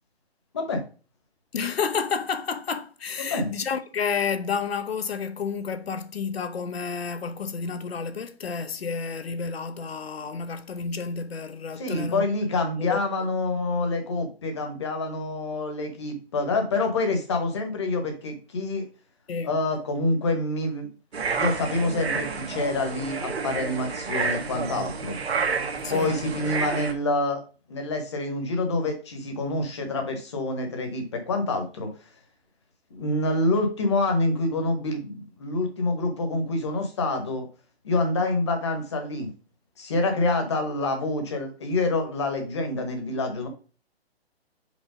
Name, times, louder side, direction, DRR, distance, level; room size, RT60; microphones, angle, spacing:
voice 1, 1.5-12.3 12.7-13.0 19.3-19.5 25.8-26.2, left 5 dB, 70° left, 1.0 m, -30 dB
voice 2, 3.2-3.5 11.8-18.9 19.4-20.9 21.3-25.2 25.9-27.4 27.7-31.9 32.9-37.5 37.8-39.3 39.8-43.5, left 2 dB, 25° left, 1.2 m, -27 dB
sound 1, 21.1-26.9, right 5 dB, 75° right, 1.4 m, -30 dB
5.2 x 4.2 x 5.0 m
hypercardioid pair, 180°, 32 cm